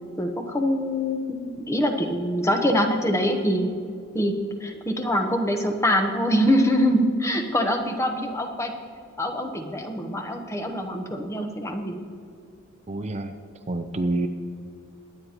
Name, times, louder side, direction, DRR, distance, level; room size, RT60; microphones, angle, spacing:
voice 1, 0.2-3.7 4.1-4.3 4.6-8.7 9.2-12.0, equal, 15° left, 5 dB, 0.9 m, -24 dB
voice 2, 12.9-13.3 13.7-14.3, right 2 dB, 30° right, 7 dB, 0.5 m, -27 dB
22.0 x 9.4 x 2.9 m, 2.5 s
head